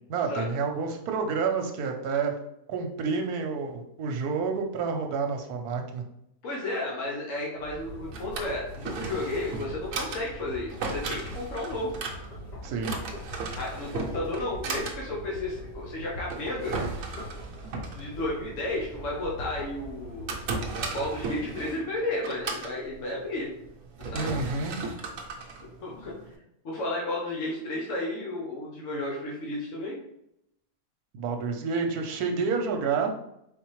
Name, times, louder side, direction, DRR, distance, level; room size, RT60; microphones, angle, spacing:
voice 1, 0.1-2.4 2.7-6.0 12.6-12.9 24.1-24.8 31.1-33.1, right 5 dB, 85° right, 4 dB, 1.2 m, -29 dB
voice 2, 6.4-12.0 13.6-16.8 17.9-20.4 20.9-23.5 24.0-24.4 25.8-26.1 26.6-30.0, left 2 dB, 60° left, -3 dB, 1.2 m, -33 dB
sound 1, 7.5-21.3, equal, 35° left, 0.9 m, -42 dB
Drawer open or close, 7.8-26.3, right 3 dB, 65° right, 1.0 m, -37 dB
4.3 x 4.0 x 3.0 m, 0.80 s
omnidirectional pair, 1.6 m